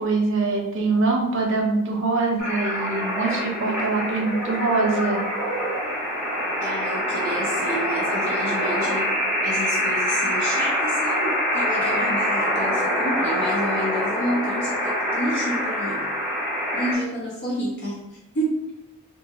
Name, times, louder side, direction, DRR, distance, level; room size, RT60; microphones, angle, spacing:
voice 1, 0.0-5.3, right 3 dB, 60° right, 1 dB, 0.5 m, -23 dB
sound 1, 2.4-16.9, equal, 5° right, 0.8 m, -25 dB
voice 2, 6.6-9.1 9.4-16.0 16.7-18.0 18.3-18.6, equal, 50° left, -4 dB, 0.5 m, -29 dB
2.8 x 2.6 x 2.3 m, 0.92 s
head